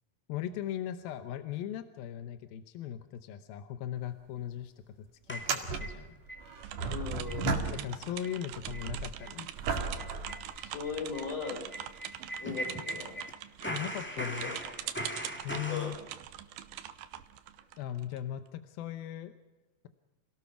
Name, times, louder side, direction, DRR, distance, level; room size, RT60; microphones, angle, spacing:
voice 1, 0.3-6.2 7.7-9.5 13.7-14.5 15.4-16.0 17.8-19.3, left 11 dB, 85° left, 9 dB, 2.8 m, -38 dB
sound 1, 4.0-4.1 4.4-4.5 5.3-8.2 8.5-11.2 11.9-12.0 16.1-16.2 17.6-17.7, right 4 dB, 50° right, 3.1 m, -36 dB
sound 2, 5.3-6.4 6.8-6.9 7.3-7.5 7.8-7.9 8.2-8.4 8.7-8.9 9.2-9.3 9.7-13.3 13.6-15.9, equal, 5° left, 1.4 m, -40 dB
sound 3, 6.6-18.2, right 11 dB, 80° right, 2.7 m, -44 dB
voice 2, 6.9-7.8 10.5-11.7 12.3-13.2 14.1-14.8 15.7-15.9, left 5 dB, 60° left, 3 dB, 6.2 m, -39 dB
28.0 x 18.0 x 5.9 m, 1.1 s
omnidirectional pair, 4.1 m